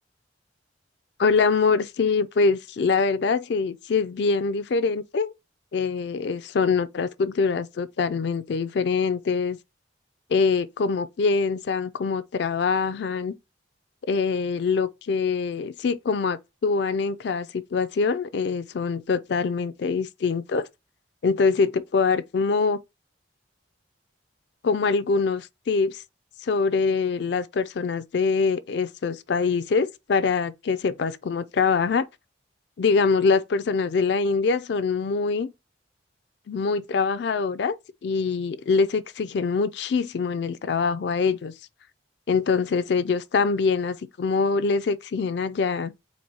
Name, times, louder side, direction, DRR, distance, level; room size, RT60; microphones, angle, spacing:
voice 1, 1.2-5.3 5.7-9.6 10.3-13.3 14.1-20.7 21.2-22.8 24.6-26.0 26.4-32.0 32.8-35.5 36.5-37.8 38.0-41.5 42.3-45.9, left 4 dB, 65° left, 0.4 m, -24 dB
4.2 x 2.6 x 4.6 m
head